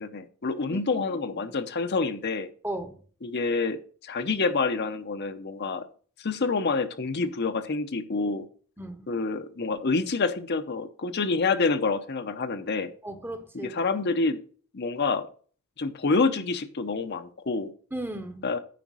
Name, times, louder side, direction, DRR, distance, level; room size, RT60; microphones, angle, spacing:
voice 1, 0.0-2.5 3.2-5.8 6.2-8.5 9.1-12.9 13.6-14.4 14.7-15.3 15.8-17.7 18.4-18.6, left 4 dB, 50° left, 0.7 m, -27 dB
voice 2, 0.7-1.0 1.3-1.5 2.6-3.0 8.8-9.0 13.0-13.8 17.9-18.4, right 1 dB, 10° right, 0.8 m, -36 dB
9.3 x 5.0 x 6.1 m
head